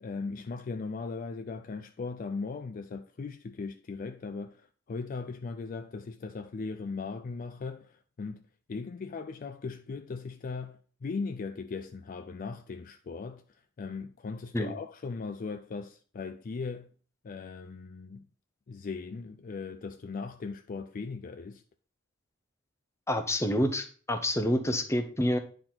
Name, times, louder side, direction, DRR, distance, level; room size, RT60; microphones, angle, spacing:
voice 1, 0.0-8.4 8.7-13.4 13.8-16.9 17.2-18.2 18.7-21.6, left 4 dB, 40° left, 0.4 m, -38 dB
voice 2, 23.1-25.4, left 1 dB, 15° left, 0.7 m, -28 dB
9.6 x 3.9 x 4.3 m
head